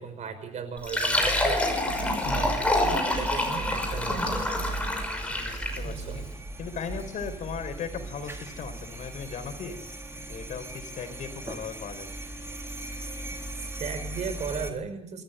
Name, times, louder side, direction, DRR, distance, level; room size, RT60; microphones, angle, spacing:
voice 1, 0.0-1.8 2.3-4.7 5.8-6.2 13.8-15.2, right 6 dB, 65° right, 9 dB, 5.5 m, -36 dB
Fill (with liquid), 0.8-5.9, left 1 dB, 10° left, 6.0 m, -27 dB
sound 1, 1.1-8.9, right 4 dB, 90° right, 5.5 m, -38 dB
sound 2, 2.2-14.7, right 1 dB, 20° right, 3.6 m, -40 dB
voice 2, 5.3-6.3 6.6-9.8 10.2-12.1, left 6 dB, 75° left, 8 dB, 4.2 m, -37 dB
27.5 x 14.0 x 7.9 m, 0.68 s
cardioid pair, 125°, 13 cm